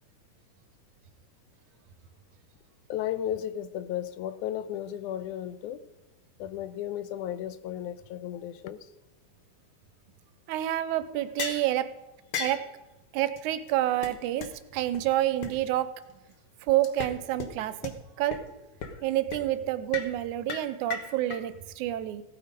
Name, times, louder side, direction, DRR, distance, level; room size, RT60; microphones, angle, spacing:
voice 1, 2.9-5.8 6.4-8.9, left 11 dB, 85° left, 2.1 m, -34 dB
voice 2, 10.5-11.9 12.4-12.6 13.1-14.5 14.7-15.9 16.7-18.4 19.0-22.2, right 13 dB, 90° right, 2.1 m, -28 dB
sound 1, 11.4-11.7 12.3-12.6 13.4-13.5 13.7-13.8 14.0-14.1 14.4-14.5 14.9-15.0 15.4-15.5 16.8-17.1 17.4-17.5 17.8-17.9 18.3-18.4 18.8-19.0 19.3-19.4 19.9-20.1 20.5-21.4, left 5 dB, 55° left, 1.8 m, -34 dB
16.0 x 8.8 x 5.2 m
omnidirectional pair, 3.4 m